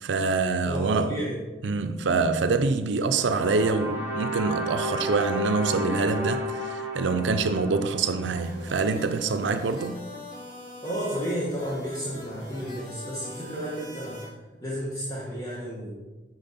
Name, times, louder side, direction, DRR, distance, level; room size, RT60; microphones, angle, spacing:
voice 1, 0.0-1.1 1.6-10.0, right 4 dB, 80° right, 0.5 m, -25 dB
voice 2, 0.7-1.3 10.8-15.9, equal, 20° left, 1.4 m, -32 dB
sound 1, 3.1-9.3, equal, 15° right, 1.5 m, -33 dB
sound 2, 8.4-14.3, left 1 dB, 40° left, 2.8 m, -43 dB
8.9 x 5.9 x 4.2 m
head